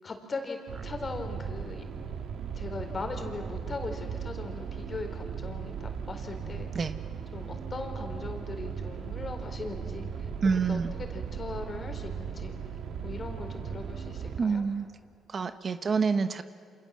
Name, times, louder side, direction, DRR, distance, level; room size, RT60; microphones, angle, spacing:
voice 1, 0.0-1.9 2.5-6.7 7.3-10.8 11.1-12.5 13.0-14.7, left 3 dB, 35° left, 5 dB, 4.2 m, -39 dB
sound 1, 0.7-14.4, right 7 dB, 70° right, 1.9 m, -37 dB
voice 2, 10.4-10.9 14.4-14.9 15.3-16.4, right 5 dB, 45° right, 10 dB, 1.1 m, -27 dB
29.0 x 27.0 x 7.6 m, 2.2 s
cardioid pair, 90°, 0 cm